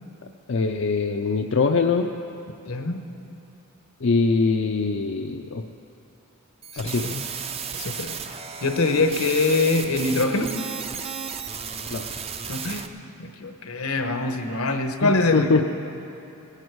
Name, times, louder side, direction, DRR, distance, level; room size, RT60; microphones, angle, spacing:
voice 1, 0.5-2.1 4.0-5.6 6.8-7.2 11.9-12.1 15.0-15.6, left 4 dB, 55° left, 4 dB, 0.5 m, -23 dB
voice 2, 2.7-3.0 6.7-7.2 7.7-8.1 8.6-10.5 12.5-12.9 13.2-15.6, left 3 dB, 75° left, 6 dB, 1.0 m, -24 dB
sound 1, 6.6-12.9, right 6 dB, 25° right, 0.5 m, -34 dB
20.5 x 11.5 x 4.6 m, 2.8 s
head